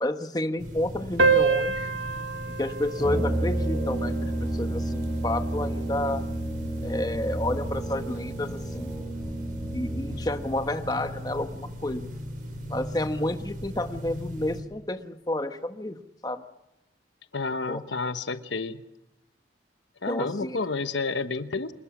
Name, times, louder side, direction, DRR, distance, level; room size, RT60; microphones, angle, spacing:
voice 1, 0.0-1.9 2.6-6.2 6.8-9.2 9.7-12.1 12.7-16.0 16.2-16.4 17.7-17.8 20.1-20.6, left 1 dB, 20° left, 8 dB, 1.2 m, -30 dB
sound 1, 0.6-14.6, equal, 45° right, 5.4 m, -38 dB
sound 2, 1.2-6.2, right 4 dB, 75° right, 1.8 m, -28 dB
Brass instrument, 3.0-10.4, right 1 dB, ahead, 5.9 m, -31 dB
voice 2, 17.3-18.8 20.0-21.7, left 3 dB, 80° left, 11 dB, 1.1 m, -30 dB
26.5 x 20.5 x 6.1 m, 0.91 s
head